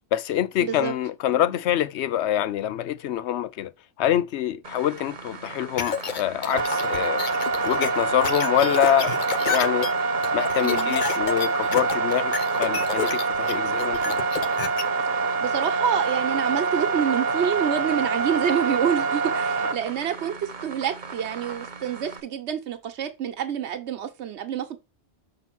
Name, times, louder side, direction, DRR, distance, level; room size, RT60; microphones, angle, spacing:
voice 1, 0.1-3.7 4.0-7.2 7.6-9.1 9.5-9.9 10.3-14.1, left 11 dB, 80° left, 0.9 m, -25 dB
voice 2, 0.6-0.9 10.6-10.9 15.4-24.8, right 8 dB, 75° right, 1.2 m, -27 dB
sound 1, 4.6-22.2, right 4 dB, 45° right, 1.0 m, -26 dB
sound 2, 5.8-14.8, left 6 dB, 50° left, 0.8 m, -30 dB
5.7 x 3.8 x 5.9 m
omnidirectional pair, 1.1 m